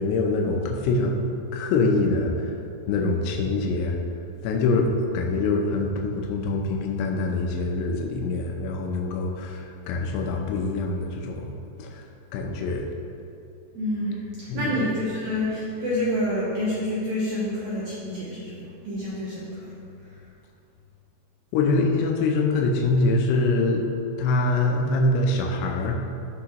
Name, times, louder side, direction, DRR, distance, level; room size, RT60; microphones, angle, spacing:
voice 1, 0.0-2.5 2.9-4.0 4.4-4.9 5.1-11.5 11.8-12.1 12.3-12.9 14.5-14.8 21.5-23.9 24.2-26.0, left 3 dB, 85° left, 1 dB, 2.9 m, -24 dB
voice 2, 13.7-14.3 14.5-19.7, left 1 dB, 70° right, -8 dB, 1.9 m, -28 dB
14.0 x 5.4 x 3.0 m, 2.6 s
omnidirectional pair, 4.8 m